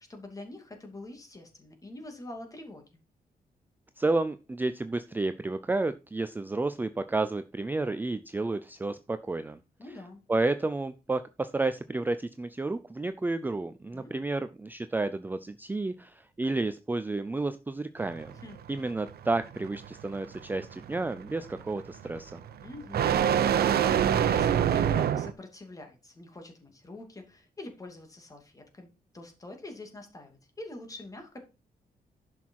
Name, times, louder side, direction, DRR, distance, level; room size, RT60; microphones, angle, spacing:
voice 1, 0.1-2.8 9.8-10.2 13.9-14.2 18.4-18.6 22.6-28.9 29.1-31.4, left 2 dB, 20° left, 4 dB, 2.5 m, -45 dB
voice 2, 4.0-9.6 10.3-18.3 18.7-22.4, right 2 dB, 10° right, 11 dB, 0.4 m, -31 dB
sound 1, 18.0-25.3, right 9 dB, 90° right, 0.9 m, -26 dB
11.0 x 6.2 x 4.6 m, 0.31 s
wide cardioid pair, 160°, 16 cm